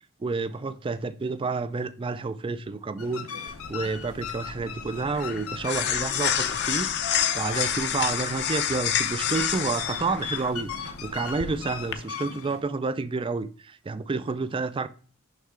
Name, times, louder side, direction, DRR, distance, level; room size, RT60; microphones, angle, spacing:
voice 1, 0.2-14.9, right 4 dB, 25° right, 0.4 m, -30 dB
sound 1, 3.0-12.6, left 7 dB, 90° left, 0.9 m, -38 dB
sound 2, 3.5-11.9, left 9 dB, 55° left, 0.6 m, -29 dB
6.5 x 5.5 x 3.7 m
head